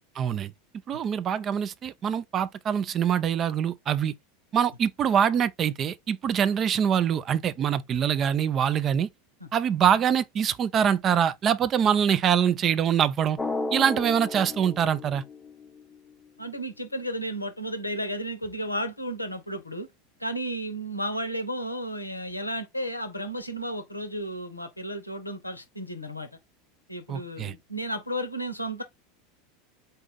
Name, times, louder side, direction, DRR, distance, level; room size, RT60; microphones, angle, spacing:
voice 1, 0.2-0.5 0.9-4.1 4.5-9.1 9.5-13.4 13.7-15.2 27.1-27.5, right 8 dB, 35° right, 0.4 m, -24 dB
Drum, 13.4-16.0, left 3 dB, 15° left, 0.5 m, -34 dB
voice 2, 16.4-19.9 20.2-26.3 26.9-28.8, equal, 90° left, 0.7 m, -33 dB
4.0 x 2.5 x 3.7 m
figure-of-eight pair, 80°, 0 cm